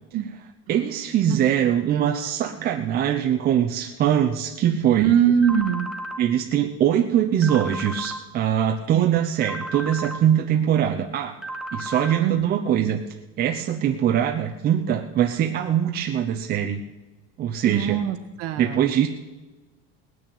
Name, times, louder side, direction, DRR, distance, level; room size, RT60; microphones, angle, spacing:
voice 1, 0.7-5.1 6.2-11.4 11.7-13.0 13.4-16.8 17.4-18.0 18.6-19.1, right 9 dB, 30° right, 3 dB, 0.8 m, -22 dB
voice 2, 4.9-5.9 8.9-9.2 12.2-12.5 17.6-18.9, right 9 dB, 50° right, 6 dB, 1.6 m, -22 dB
sound 1, 5.4-6.2 7.4-8.2 9.4-10.2 11.4-12.2, right 1 dB, ahead, 1.1 m, -33 dB
19.0 x 6.5 x 8.7 m, 1.2 s
cardioid pair, 155°, 30 cm